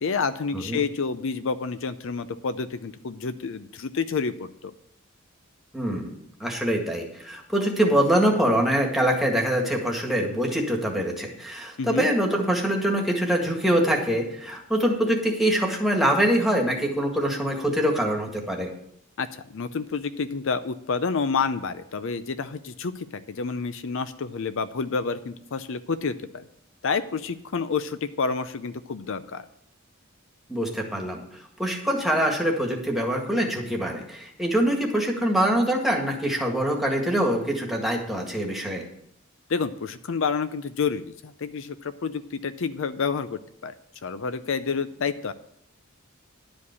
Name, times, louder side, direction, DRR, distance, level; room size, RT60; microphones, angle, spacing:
voice 1, 0.0-4.7 11.8-12.1 19.2-26.5 26.8-29.4 39.5-43.7 44.0-45.3, left 5 dB, 65° left, 11 dB, 0.6 m, -29 dB
voice 2, 5.7-6.1 6.4-18.7 30.5-38.8, right 1 dB, ahead, 1 dB, 1.8 m, -24 dB
11.5 x 5.2 x 8.2 m, 0.72 s
head